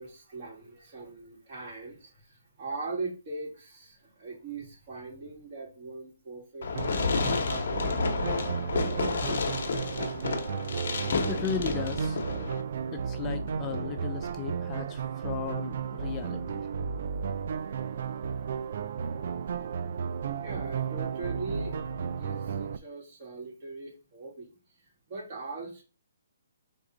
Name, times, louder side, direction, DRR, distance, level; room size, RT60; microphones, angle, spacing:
voice 1, 0.0-7.1 16.9-19.0 19.4-24.6 24.8-25.8, right 3 dB, 40° right, 2.5 m, -41 dB
Fireworks, 6.6-12.6, left 4 dB, 60° left, 0.9 m, -30 dB
sound 1, 6.7-22.8, right 6 dB, 55° right, 0.4 m, -33 dB
voice 2, 11.3-12.2 12.9-16.7, left 7 dB, 20° left, 0.4 m, -36 dB
3.7 x 3.5 x 3.8 m
hypercardioid pair, 155°, 0 cm